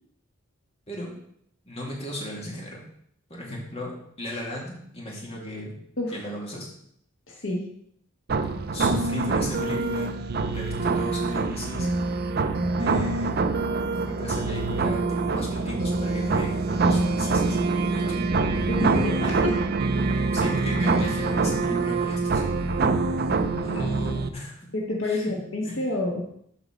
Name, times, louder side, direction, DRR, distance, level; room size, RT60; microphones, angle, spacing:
voice 1, 1.6-2.8 3.3-5.8 6.1-6.7 8.7-10.2 10.5-11.9 12.8-13.3 13.9-17.6 17.9-18.3 20.3-22.5 23.6-24.7 25.0-25.3 25.6-25.8, equal, 30° left, -2 dB, 2.3 m, -36 dB
voice 2, 7.3-7.7 18.7-19.6 20.1-20.3 23.7-23.8 24.7-26.3, left 2 dB, 70° left, -1 dB, 1.5 m, -29 dB
sound 1, 8.3-24.3, right 3 dB, 50° right, 0.6 m, -25 dB
7.3 x 4.9 x 6.4 m, 0.69 s
head